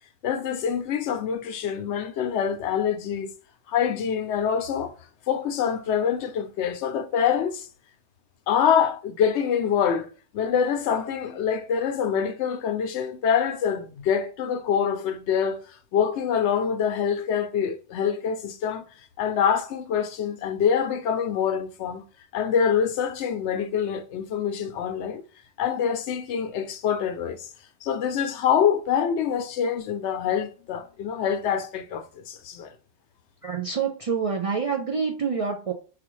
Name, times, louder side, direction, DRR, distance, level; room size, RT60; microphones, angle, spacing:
voice 1, 0.2-3.3 3.7-4.9 5.3-7.7 8.5-15.6 15.9-18.8 19.2-22.0 22.3-25.2 25.6-27.5 27.8-32.7, left 7 dB, 85° left, 0.9 m, -25 dB
voice 2, 33.4-35.7, right 6 dB, 50° right, 0.4 m, -27 dB
4.9 x 2.4 x 3.0 m
omnidirectional pair, 1.1 m